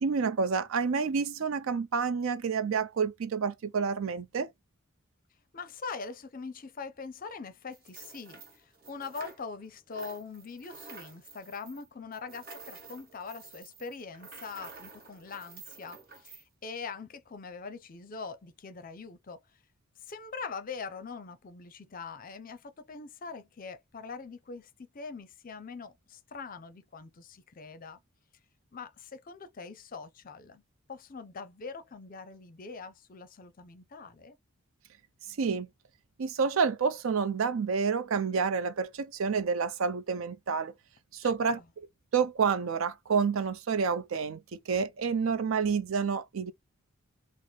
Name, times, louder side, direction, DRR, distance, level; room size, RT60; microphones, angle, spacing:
voice 1, 0.0-4.5 35.4-35.7 36.2-40.7 41.1-41.6 42.1-46.5, right 5 dB, 70° right, 0.5 m, -29 dB
voice 2, 5.5-19.4 20.0-28.0 28.7-30.6 30.9-34.4 41.2-41.6, left 5 dB, 40° left, 0.5 m, -43 dB
sound 1, 7.7-9.7 9.9-16.4, right 4 dB, 45° right, 1.0 m, -50 dB
4.0 x 2.0 x 3.0 m
head